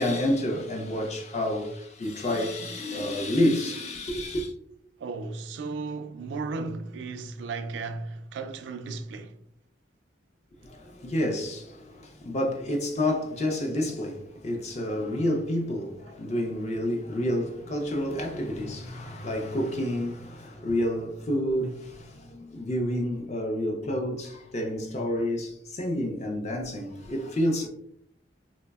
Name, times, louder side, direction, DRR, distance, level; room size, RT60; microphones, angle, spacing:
voice 1, 0.0-4.5 10.6-27.7, left 1 dB, 35° left, 0.4 m, -29 dB
voice 2, 5.0-9.3, right 3 dB, 70° right, 0.3 m, -35 dB
3.2 x 2.0 x 2.2 m
head